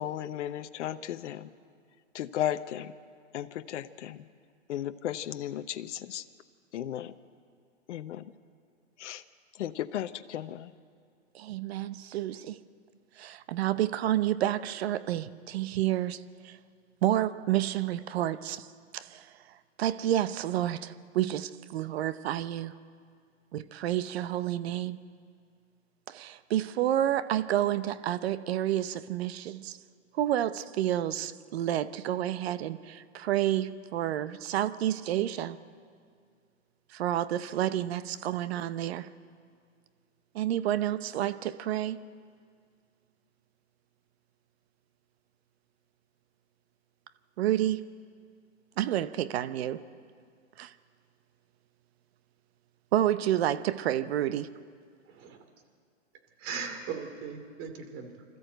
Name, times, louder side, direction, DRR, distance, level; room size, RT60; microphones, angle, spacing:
voice 1, 0.0-1.4 2.1-2.9 3.3-4.2 4.7-6.2 6.7-7.1 7.9-8.2 9.0-9.2 9.6-10.7, left 11 dB, 65° left, 10 dB, 0.9 m, -35 dB
voice 2, 11.3-12.6 13.2-16.6 17.0-18.7 18.9-19.3 19.8-22.7 23.5-25.0 26.1-29.8 30.2-35.6 36.9-39.1 40.3-42.0 47.4-47.8 48.8-49.8 50.6-50.7 52.9-54.5, right 12 dB, 55° right, 14 dB, 0.9 m, -29 dB
voice 3, 55.1-55.4 56.4-58.2, right 6 dB, 35° right, 6 dB, 2.6 m, -39 dB
26.0 x 13.5 x 7.9 m, 2.2 s
hypercardioid pair, 135°, 38 cm